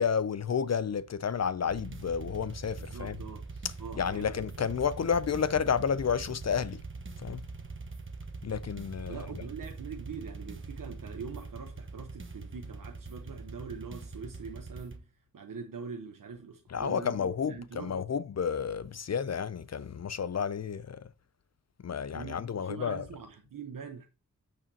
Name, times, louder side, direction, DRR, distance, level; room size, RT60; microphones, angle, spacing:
voice 1, 0.0-3.1 4.0-6.8 7.2-7.4 8.4-9.2 16.7-21.0 21.8-23.0, left 7 dB, 55° left, 0.5 m, -31 dB
sound 1, 1.7-15.0, right 3 dB, 40° right, 1.1 m, -43 dB
voice 2, 2.8-3.5 3.8-4.3 9.1-17.2 17.5-18.1 22.1-24.1, right 6 dB, 90° right, 0.9 m, -43 dB
8.8 x 6.6 x 2.8 m
wide cardioid pair, 105°, 32 cm